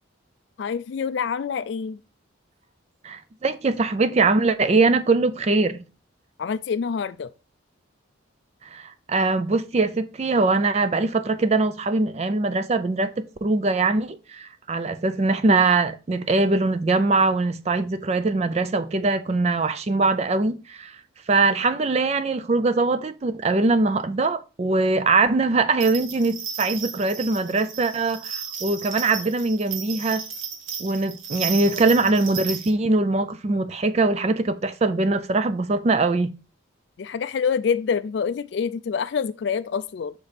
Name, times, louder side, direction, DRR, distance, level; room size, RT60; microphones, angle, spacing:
voice 1, 0.6-2.0 6.4-7.3 31.5-31.8 37.0-40.1, left 6 dB, 55° left, 0.3 m, -26 dB
voice 2, 3.0-5.8 8.6-21.0 21.3-30.2 30.8-36.3, right 3 dB, 30° right, 0.4 m, -22 dB
sound 1, 25.8-32.7, right 7 dB, 75° right, 1.1 m, -34 dB
5.9 x 5.0 x 4.1 m
head